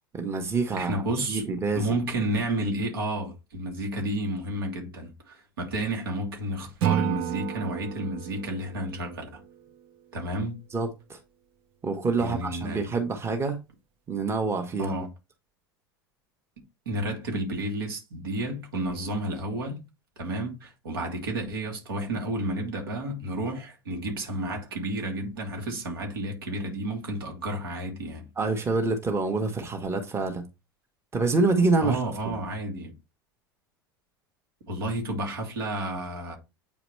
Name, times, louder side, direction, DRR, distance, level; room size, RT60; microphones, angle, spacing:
voice 1, 0.1-1.0 1.3-1.9 10.7-11.2 11.8-13.6 14.1-14.9 28.4-30.4 31.1-32.0, right 3 dB, 20° right, 1.7 m, -26 dB
voice 2, 0.7-1.5 1.7-9.4 10.1-10.6 12.2-12.8 14.8-15.1 16.9-19.8 20.2-28.3 31.8-32.9 34.7-36.4, right 1 dB, 75° right, 2.8 m, -31 dB
Acoustic guitar / Strum, 6.8-10.0, right 9 dB, 50° right, 1.2 m, -31 dB
8.6 x 4.9 x 3.3 m
figure-of-eight pair, 80°, 12 cm